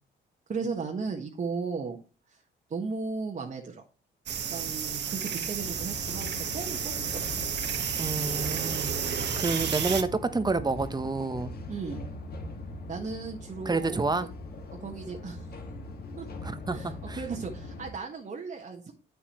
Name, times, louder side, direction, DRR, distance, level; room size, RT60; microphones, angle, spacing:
voice 1, 0.5-2.0 2.3-2.4 2.7-3.8 4.5-7.4 8.8-9.2 11.7-12.0 12.9-14.3 14.8-15.5 16.2-16.3 16.7-18.9, right 4 dB, 40° right, 1 dB, 1.4 m, -36 dB
sound 1, 4.3-10.0, right 7 dB, 60° right, 1.4 m, -31 dB
sound 2, 5.6-17.9, left 2 dB, 50° left, 1.9 m, -41 dB
voice 2, 8.0-8.9 9.4-11.5 13.6-14.3 16.4-17.2, right 3 dB, 20° right, 11 dB, 1.0 m, -29 dB
8.5 x 7.1 x 3.1 m, 0.34 s
cardioid pair, 90°, 20 cm